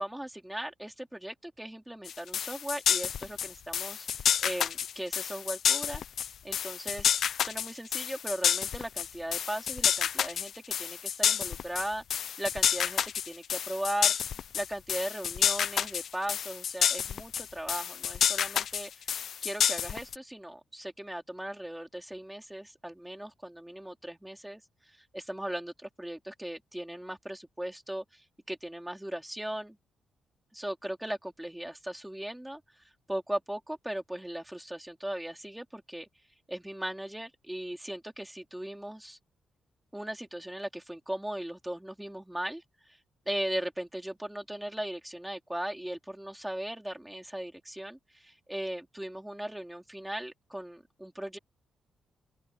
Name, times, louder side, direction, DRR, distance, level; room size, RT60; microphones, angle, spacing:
voice 1, 0.0-6.0 6.4-14.1 14.5-19.1 19.4-24.6 24.9-29.8 30.5-32.6 33.1-36.1 36.5-39.2 39.9-42.6 42.9-43.0 43.3-51.4, right 1 dB, 5° right, 3.6 m, -38 dB
sound 1, 2.1-20.2, left 8 dB, 55° left, 0.5 m, -29 dB
open air
wide cardioid pair, 170°, 0 cm